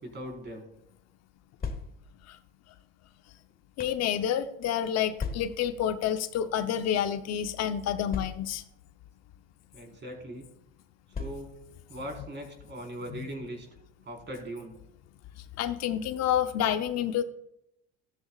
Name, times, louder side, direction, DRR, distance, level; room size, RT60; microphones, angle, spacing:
voice 1, 0.0-0.7 9.7-10.4 11.2-11.6 11.9-13.7 14.1-14.8, right 1 dB, 35° right, 2 dB, 4.5 m, -40 dB
sound 1, 1.4-2.2 3.0-4.1 5.2-5.8 6.6-6.8 7.1-7.2 8.1-8.7 9.6-9.8 11.1-11.7, left 5 dB, 30° left, 1.6 m, -38 dB
voice 2, 3.8-8.6 13.1-13.2 15.6-17.2, left 9 dB, 55° left, 9 dB, 0.9 m, -29 dB
14.0 x 12.5 x 2.4 m, 0.80 s
supercardioid pair, 80°, 30 cm